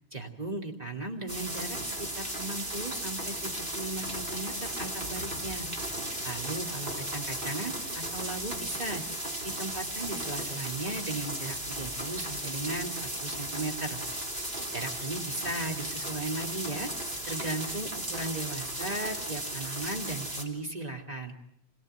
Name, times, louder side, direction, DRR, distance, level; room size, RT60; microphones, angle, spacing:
voice 1, 0.1-5.7 6.2-9.0 9.4-12.9 13.2-14.0 14.7-16.9 17.3-21.3, right 2 dB, 40° right, 2 dB, 2.9 m, -36 dB
sound 1, 1.3-20.4, right 1 dB, 60° right, 3.6 m, -35 dB
26.5 x 17.0 x 9.2 m, 0.79 s
omnidirectional pair, 1.0 m